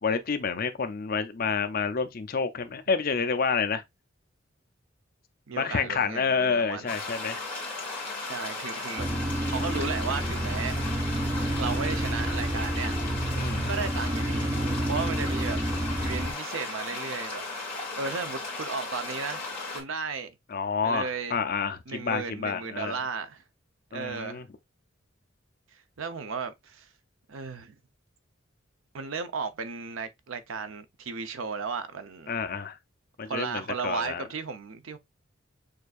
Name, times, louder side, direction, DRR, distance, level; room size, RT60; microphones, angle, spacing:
voice 1, 0.0-3.8 5.5-7.5 13.4-13.7 20.5-23.0 23.9-24.5 32.3-32.8 33.2-34.2, left 5 dB, 45° left, 0.5 m, -29 dB
voice 2, 5.5-6.9 8.2-9.1 9.5-11.1 11.5-12.9 13.6-14.5 14.9-15.6 16.0-17.5 18.0-19.5 19.7-20.4 20.8-21.4 21.9-23.4 23.9-24.4 25.7-26.9 27.3-27.7 28.9-32.3 33.2-35.0, right 5 dB, 90° right, 0.6 m, -34 dB
sound 1, 6.9-19.8, left 3 dB, 10° left, 1.9 m, -36 dB
sound 2, 9.0-16.3, right 1 dB, 15° right, 0.5 m, -29 dB
6.5 x 2.6 x 2.4 m
head